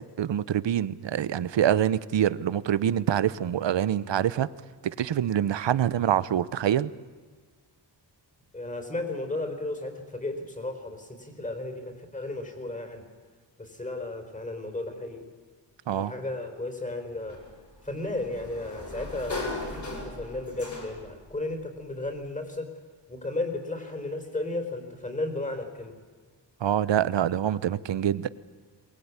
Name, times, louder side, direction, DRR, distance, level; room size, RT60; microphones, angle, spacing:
voice 1, 0.2-4.5 4.8-6.9 15.9-16.1 26.6-28.3, right 10 dB, 80° right, 18 dB, 1.0 m, -25 dB
voice 2, 8.5-13.0 13.6-15.3 15.9-17.4 17.8-22.7 23.1-26.0, left 2 dB, 15° left, 6 dB, 4.4 m, -34 dB
Sliding door, 17.3-21.2, left 2 dB, 40° left, 7.1 m, -37 dB
23.0 x 20.5 x 9.7 m, 1.5 s
wide cardioid pair, 145°, 43 cm